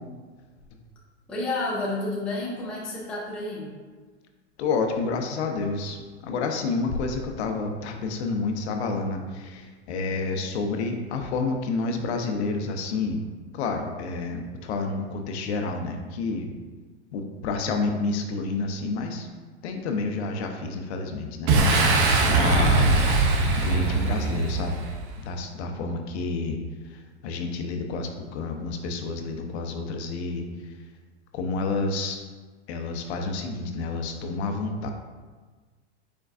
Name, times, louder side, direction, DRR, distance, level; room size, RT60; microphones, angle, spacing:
voice 1, 1.3-3.7, left 2 dB, 5° left, -5 dB, 0.4 m, -30 dB
voice 2, 4.6-13.2 13.5-16.6 17.1-19.3 19.6-22.9 23.6-24.8 25.2-26.6 26.8-30.8 31.3-32.2 32.7-34.9, left 3 dB, 65° left, 4 dB, 0.7 m, -29 dB
Boom, 21.5-25.1, right 3 dB, 45° right, 0.6 m, -21 dB
4.6 x 4.5 x 2.5 m, 1.4 s
supercardioid pair, 150°, 35 cm